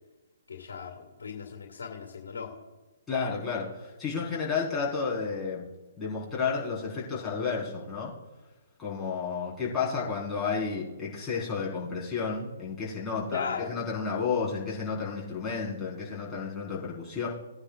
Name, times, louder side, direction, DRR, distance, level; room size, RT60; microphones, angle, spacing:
voice 1, 0.5-2.5 13.3-13.7, left 5 dB, 70° left, 2 dB, 2.2 m, -37 dB
voice 2, 3.1-5.6 6.0-8.1 8.8-17.3, left 5 dB, 10° left, -7 dB, 4.6 m, -31 dB
19.0 x 9.8 x 2.5 m, 1.1 s
figure-of-eight pair, 130°, 0 cm